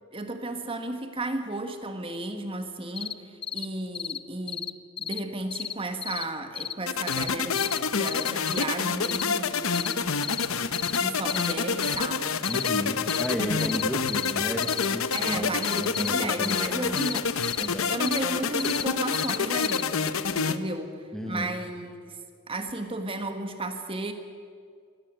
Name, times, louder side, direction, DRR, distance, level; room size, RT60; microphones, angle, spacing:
voice 1, 0.1-4.7 5.0-10.1 10.9-12.5 13.1-13.8 15.1-17.3 17.9-22.2 22.5-24.1, right 2 dB, 25° right, 7 dB, 1.6 m, -34 dB
sound 1, 3.0-3.1 3.4-3.6 3.9-4.2 4.5-4.7 5.0-5.2 5.5-5.7 6.0-6.2 6.5-6.7 7.1-7.3 7.6-7.8 8.1-8.6 9.0-9.2 9.7-9.9 10.2-10.5 10.7-11.0 11.3-11.5 11.8-12.0 12.4-12.7 13.1-13.3 13.6-13.8 14.1-14.3 14.6-14.9 15.1-15.3 15.6-16.1 16.4-16.7 17.0-17.7 18.1-18.2 18.6-18.8 19.1-19.4 19.6-19.8 20.1-20.2, left 8 dB, 25° left, 0.5 m, -32 dB
sound 2, 6.9-20.6, left 5 dB, 65° left, 1.0 m, -28 dB
voice 2, 12.5-17.0 17.6-17.9 21.1-21.6, equal, ahead, 4 dB, 1.3 m, -33 dB
23.5 x 16.5 x 9.0 m, 2.2 s
head